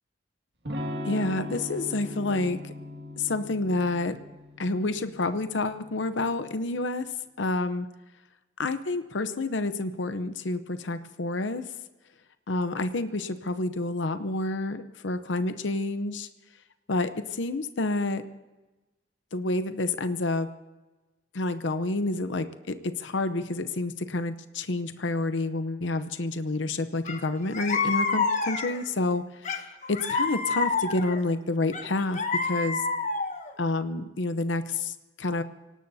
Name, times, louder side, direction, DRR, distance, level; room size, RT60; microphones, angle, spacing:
Electric guitar / Strum, 0.6-6.4, left 1 dB, 60° right, 1.9 m, -39 dB
voice 1, 1.0-2.7 3.2-4.2 4.6-7.1 7.4-7.9 8.6-11.6 12.5-16.3 16.9-18.2 19.3-20.5 21.3-32.8 33.6-34.9 35.2-35.4, left 2 dB, 80° left, 10 dB, 0.8 m, -29 dB
sound 1, 27.0-27.2 27.5-28.9 29.4-31.2 31.7-33.5, left 4 dB, 40° left, 1.2 m, -28 dB
25.0 x 18.5 x 2.7 m, 1.1 s
head